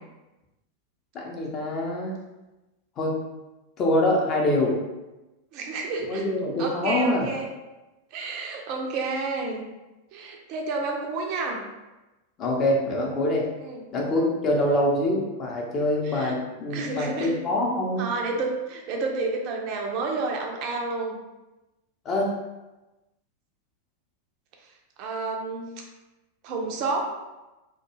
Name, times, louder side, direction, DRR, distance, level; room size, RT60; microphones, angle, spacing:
voice 1, 1.1-2.1 3.0-3.2 3.8-4.8 6.1-7.3 12.4-13.5 13.9-18.1 22.0-22.4, left 1 dB, 30° left, -1 dB, 0.6 m, -25 dB
voice 2, 5.5-6.3 6.6-7.5 8.1-9.7 10.1-11.6 13.6-13.8 16.0-16.4 16.7-17.4 18.0-21.1 25.0-25.8 26.4-27.1, right 3 dB, 40° right, 1 dB, 0.4 m, -30 dB
2.3 x 2.2 x 2.9 m, 1.1 s
figure-of-eight pair, 90°, 0 cm